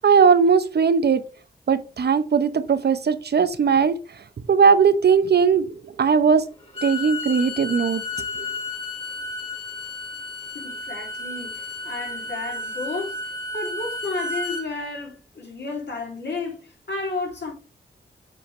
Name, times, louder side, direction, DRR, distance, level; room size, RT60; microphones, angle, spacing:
voice 1, 0.0-1.2 1.7-3.9 4.5-6.4 6.8-8.5, right 6 dB, 60° right, 0.8 m, -19 dB
Bowed string instrument, 6.6-14.7, left 2 dB, 30° left, 2.4 m, -32 dB
voice 2, 10.5-13.2 13.5-17.5, left 3 dB, 65° left, 2.8 m, -32 dB
7.9 x 4.6 x 3.2 m
cardioid pair, 70°, 19 cm